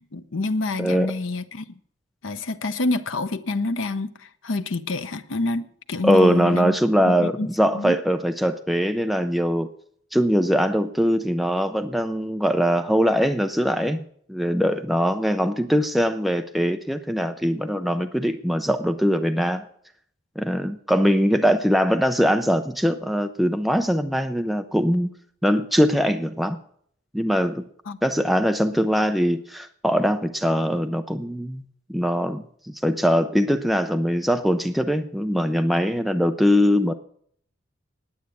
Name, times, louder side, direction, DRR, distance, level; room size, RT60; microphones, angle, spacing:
voice 1, 0.0-1.7 2.2-6.7 7.1-7.5 7.7-8.0 27.9-28.0, left 2 dB, 80° left, 0.8 m, -27 dB
voice 2, 0.8-1.1 6.0-9.7 10.1-14.0 14.3-19.6 20.4-25.1 25.4-26.6 27.1-27.6 28.0-31.6 31.9-32.4 32.8-36.9, equal, ahead, 0.5 m, -22 dB
9.5 x 9.2 x 8.3 m
head